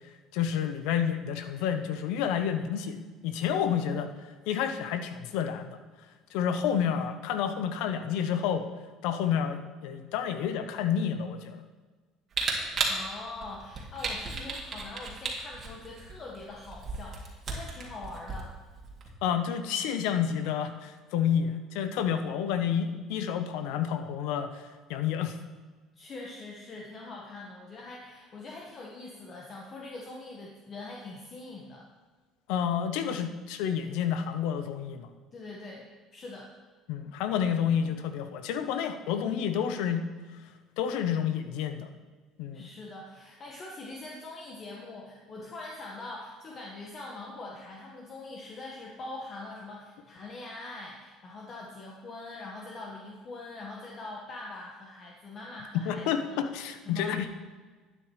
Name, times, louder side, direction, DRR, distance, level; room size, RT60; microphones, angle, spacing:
voice 1, 0.3-4.1 4.5-5.8 6.3-8.7 9.0-11.6 19.2-24.6 24.9-25.4 32.5-35.1 36.9-40.1 40.8-41.9 42.4-42.7 55.7-57.3, left 8 dB, 80° left, 9 dB, 0.8 m, -29 dB
Camera, 12.3-19.1, right 4 dB, 40° right, 2.2 m, -35 dB
voice 2, 12.9-18.5 25.9-31.8 35.3-35.9 36.1-36.5 42.5-56.4 56.8-57.3, left 2 dB, 40° left, -2 dB, 1.5 m, -43 dB
12.0 x 9.1 x 3.2 m, 1.4 s
supercardioid pair, 105°, 0 cm